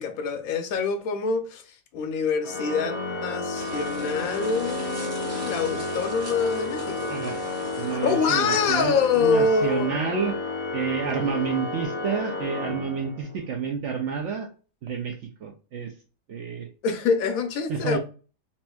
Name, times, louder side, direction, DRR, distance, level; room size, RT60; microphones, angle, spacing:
voice 1, 0.0-1.6 1.9-7.1 7.9-10.0 16.8-18.0, left 5 dB, 65° left, 1.0 m, -25 dB
Organ, 2.4-13.4, left 2 dB, 30° left, 0.6 m, -32 dB
sound 1, 3.5-8.9, right 1 dB, 10° right, 0.8 m, -40 dB
voice 2, 7.1-7.4 7.8-10.4 10.7-14.5 14.8-15.9 16.3-16.7 17.7-18.0, right 6 dB, 70° right, 0.7 m, -29 dB
4.2 x 2.9 x 2.2 m
omnidirectional pair, 1.8 m